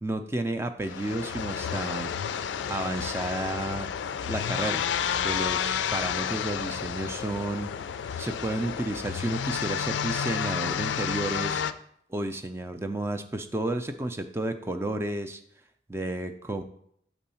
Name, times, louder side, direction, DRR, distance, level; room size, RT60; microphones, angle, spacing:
voice 1, 0.0-2.1 2.7-3.9 4.3-4.8 5.2-7.7 8.2-11.6 12.1-15.4 15.9-16.6, right 1 dB, 15° right, 8 dB, 0.4 m, -31 dB
sound 1, 0.8-11.7, left 8 dB, 90° left, 0.3 m, -31 dB
6.1 x 3.8 x 5.6 m, 0.69 s
head